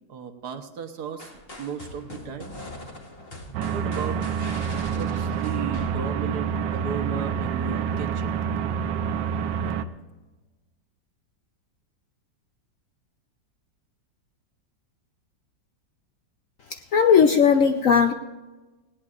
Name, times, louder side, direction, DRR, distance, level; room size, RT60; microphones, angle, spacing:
voice 1, 0.1-1.3 1.6-2.6 3.6-4.3 4.9-8.4, right 6 dB, 65° right, 7 dB, 1.5 m, -35 dB
sound 1, 1.2-6.5, left 1 dB, 30° left, 2.0 m, -42 dB
sound 2, 3.5-9.9, right 7 dB, 85° right, 1.5 m, -27 dB
voice 2, 16.7-18.1, left 6 dB, 65° left, 6 dB, 0.8 m, -18 dB
19.0 x 17.0 x 2.5 m, 1.2 s
omnidirectional pair, 2.0 m